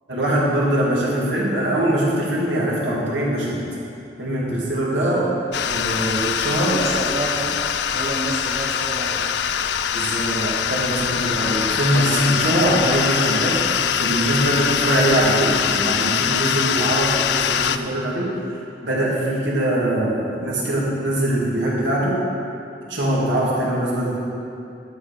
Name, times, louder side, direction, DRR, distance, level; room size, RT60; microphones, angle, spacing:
voice 1, 0.1-3.6 4.2-5.2 5.7-6.8 9.9-18.3 18.8-22.2 22.9-24.2, right 1 dB, 85° right, -5 dB, 2.5 m, -22 dB
sound 1, 5.5-17.8, left 8 dB, 70° left, 0.4 m, -23 dB
voice 2, 6.7-7.6 7.9-9.2, right 1 dB, 35° right, -3 dB, 0.9 m, -29 dB
11.0 x 7.0 x 5.1 m, 2.7 s
head